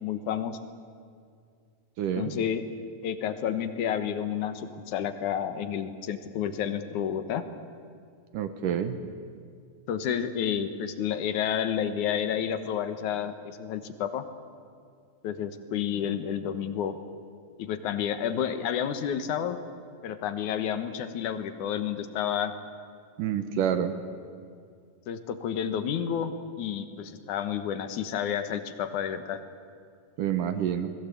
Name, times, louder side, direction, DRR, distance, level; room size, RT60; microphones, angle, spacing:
voice 1, 0.0-0.6 2.2-2.6 3.0-7.4 9.9-14.2 15.2-17.0 17.6-19.6 20.0-22.6 25.1-29.4, left 9 dB, 65° left, 10 dB, 2.1 m, -30 dB
voice 2, 2.0-2.3 8.3-9.0 23.2-23.9 30.2-30.9, right 9 dB, 70° right, 9 dB, 2.2 m, -28 dB
28.5 x 21.0 x 8.5 m, 2.3 s
omnidirectional pair, 4.9 m